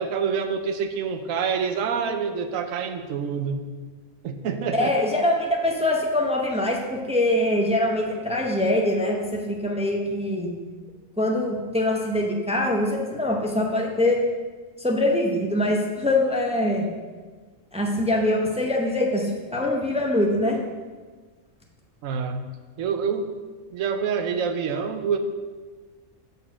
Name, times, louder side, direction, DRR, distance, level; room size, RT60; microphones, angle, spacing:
voice 1, 0.0-3.6 4.2-4.9 22.0-22.4 22.8-23.3 23.7-25.2, right 6 dB, 85° right, 7 dB, 1.1 m, -26 dB
voice 2, 4.7-10.5 11.2-14.2 14.8-16.9 17.7-20.6, left 1 dB, 5° right, 0 dB, 0.6 m, -23 dB
6.6 x 4.5 x 6.1 m, 1.4 s
omnidirectional pair, 1.3 m